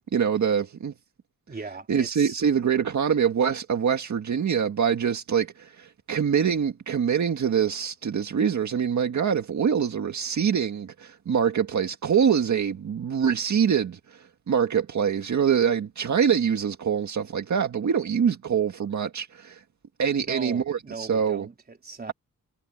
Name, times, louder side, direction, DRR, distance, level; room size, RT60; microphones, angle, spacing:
voice 1, 0.1-0.9 1.9-19.6 20.0-21.5, right 7 dB, 65° right, 1.8 m, -24 dB
voice 2, 1.5-2.4 20.3-22.1, right 4 dB, 30° right, 3.9 m, -39 dB
wide cardioid pair, 135°, 31 cm